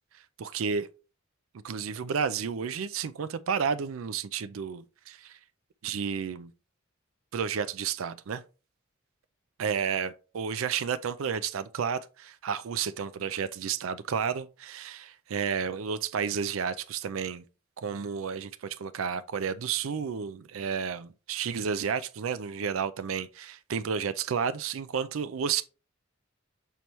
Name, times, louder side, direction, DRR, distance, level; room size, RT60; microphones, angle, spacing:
voice 1, 0.4-0.9 1.6-5.4 5.8-6.5 7.3-8.4 9.6-17.4 17.8-25.6, right 6 dB, 80° right, 0.4 m, -31 dB
6.8 x 4.5 x 3.1 m
head